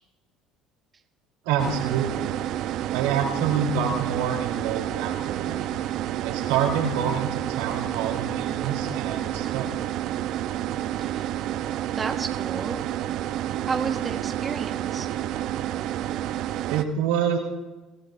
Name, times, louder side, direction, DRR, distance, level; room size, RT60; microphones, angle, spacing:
voice 1, 1.4-2.3 2.9-5.6 6.2-9.7 16.7-17.4, right 7 dB, 85° right, 0 dB, 3.6 m, -27 dB
sound 1, 1.6-16.8, right 12 dB, 65° right, 0.7 m, -29 dB
voice 2, 11.0-11.3 11.9-12.8 13.6-15.1, right 5 dB, 30° right, 4 dB, 1.2 m, -32 dB
24.5 x 14.0 x 2.7 m, 1.1 s
supercardioid pair, 80°, 0 cm